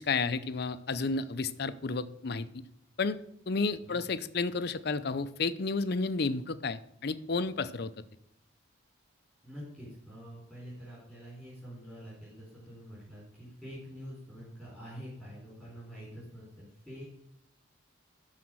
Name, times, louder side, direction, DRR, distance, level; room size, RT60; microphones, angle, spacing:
voice 1, 0.0-2.6 3.0-3.2 3.5-7.9, left 4 dB, 55° left, 13 dB, 0.6 m, -31 dB
voice 2, 9.4-17.0, equal, 5° right, -8 dB, 4.1 m, -46 dB
12.0 x 4.2 x 6.2 m, 0.76 s
head